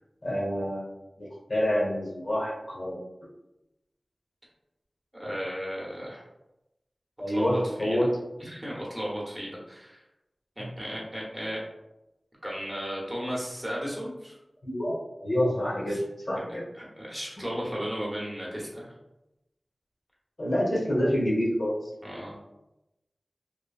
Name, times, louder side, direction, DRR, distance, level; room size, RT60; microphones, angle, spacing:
voice 1, 0.2-0.9 1.2-3.0 7.2-8.1 10.6-10.7 14.6-16.0 16.3-16.6 20.4-21.9, equal, 60° left, -5 dB, 1.0 m, -27 dB
voice 2, 5.1-6.2 7.3-8.1 8.4-10.0 10.6-11.6 12.4-14.4 15.9-16.0 16.8-18.9 22.0-22.4, equal, 15° right, -5 dB, 0.9 m, -35 dB
3.0 x 2.2 x 2.3 m, 0.92 s
wide cardioid pair, 60°, 0 cm